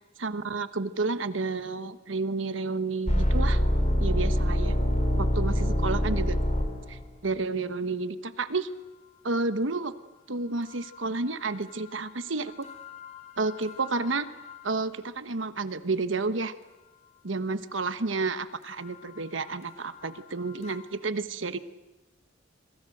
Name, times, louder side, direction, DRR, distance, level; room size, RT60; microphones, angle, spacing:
voice 1, 0.2-3.6 4.0-4.8 5.1-6.4 6.9-8.7 9.2-9.9 10.3-12.7 13.4-14.3 14.6-16.5 17.2-21.6, right 3 dB, 70° right, 12 dB, 1.2 m, -31 dB
sound 1, 3.1-7.1 12.6-14.1 14.4-14.6 20.6-20.7, equal, 35° left, 3.1 m, -25 dB
25.5 x 24.5 x 7.9 m, 1.1 s
head